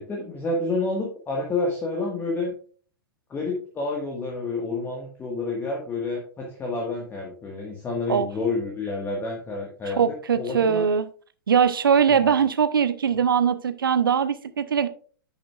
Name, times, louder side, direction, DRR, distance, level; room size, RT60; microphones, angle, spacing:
voice 1, 0.0-2.5 3.3-10.9 12.1-12.2, left 3 dB, 20° left, -1 dB, 1.6 m, -29 dB
voice 2, 10.0-11.1 11.5-14.9, right 7 dB, 75° right, 13 dB, 0.7 m, -21 dB
10.5 x 6.5 x 2.4 m, 0.43 s
figure-of-eight pair, 105°, 12 cm